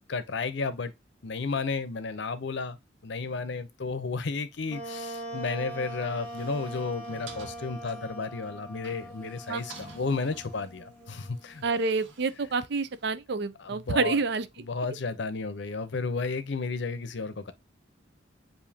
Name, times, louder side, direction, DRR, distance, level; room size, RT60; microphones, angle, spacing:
voice 1, 0.1-0.9 1.2-2.8 3.0-11.7 13.6-14.2 14.6-17.5, left 4 dB, 65° left, 0.7 m, -32 dB
Wind instrument woodwind instrument, 4.7-12.1, right 1 dB, 10° left, 1.1 m, -42 dB
sound 1, 6.0-13.1, right 3 dB, 80° right, 1.4 m, -51 dB
voice 2, 11.6-14.5, right 4 dB, 60° right, 0.5 m, -28 dB
7.1 x 2.7 x 2.7 m
head